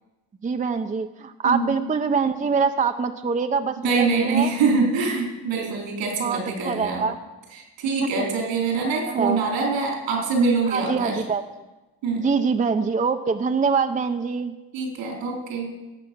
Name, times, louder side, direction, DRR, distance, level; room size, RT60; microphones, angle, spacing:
voice 1, 0.4-4.5 6.2-7.2 8.0-8.2 9.0-9.4 10.7-11.5 12.2-14.5, right 5 dB, 20° right, 7 dB, 0.6 m, -24 dB
voice 2, 3.8-7.1 7.8-11.2 12.0-12.3 14.7-15.7, right 4 dB, 90° right, 0 dB, 4.1 m, -24 dB
16.5 x 7.6 x 6.1 m, 1.1 s
cardioid pair, 110°, 43 cm